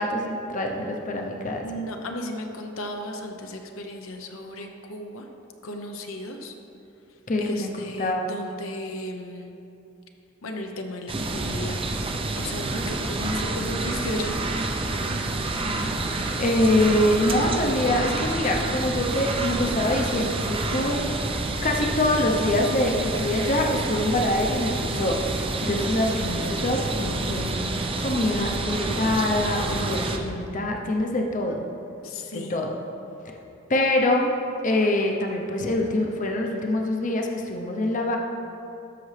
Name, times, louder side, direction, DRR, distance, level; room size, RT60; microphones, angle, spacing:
voice 1, 0.0-1.8 7.3-8.3 16.4-21.1 21.6-27.6 28.0-31.6 32.3-32.8 33.7-34.3 34.6-38.2, left 1 dB, 40° left, 2 dB, 0.7 m, -25 dB
voice 2, 1.6-5.2 5.6-6.5 7.4-9.5 10.4-11.8 12.3-14.4 28.3-29.1 32.0-32.6, left 1 dB, 80° left, 3 dB, 0.7 m, -35 dB
sound 1, 11.1-30.2, right 2 dB, 25° right, 0.5 m, -28 dB
13.0 x 6.0 x 3.3 m, 2.8 s
head